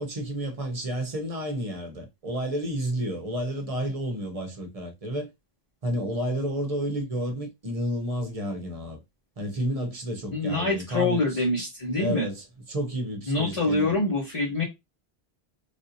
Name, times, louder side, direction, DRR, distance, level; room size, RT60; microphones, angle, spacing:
voice 1, 0.0-5.3 5.8-9.0 9.4-11.4 11.9-13.9, equal, 40° right, 0.8 m, -31 dB
voice 2, 10.3-12.3 13.3-14.6, left 2 dB, 35° left, 1.0 m, -25 dB
3.4 x 2.6 x 2.7 m
omnidirectional pair, 1.1 m